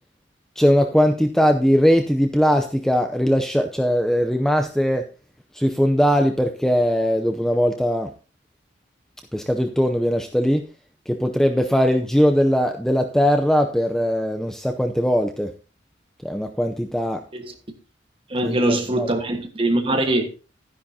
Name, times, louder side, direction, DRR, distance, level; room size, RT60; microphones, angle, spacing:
voice 1, 0.6-5.1 5.5-8.1 9.3-10.6 11.1-15.5 16.2-17.2 18.4-19.1, equal, 5° left, 0.6 m, -20 dB
voice 2, 18.3-20.3, right 1 dB, 30° right, 1.4 m, -22 dB
12.0 x 10.0 x 2.8 m
head